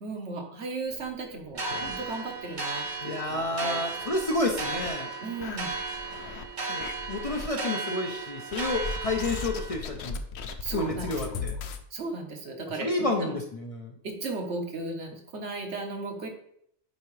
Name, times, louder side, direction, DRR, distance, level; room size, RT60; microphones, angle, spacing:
voice 1, 0.0-3.8 5.2-5.8 10.6-11.4 11.9-13.3 14.0-16.3, right 3 dB, 70° right, 2 dB, 1.4 m, -36 dB
sound 1, 0.9-2.5 2.8-2.9 3.3-3.4 4.0-4.9 5.4-6.5 6.8-7.5 8.5-11.8, left 5 dB, 70° left, 0.8 m, -38 dB
sound 2, 1.5-9.7, right 3 dB, 40° right, 1.1 m, -35 dB
voice 2, 3.0-5.1 6.7-10.2 10.7-11.5 12.8-13.9, left 2 dB, 35° left, 2 dB, 0.6 m, -30 dB
8.0 x 4.8 x 3.2 m, 0.70 s
omnidirectional pair, 1.2 m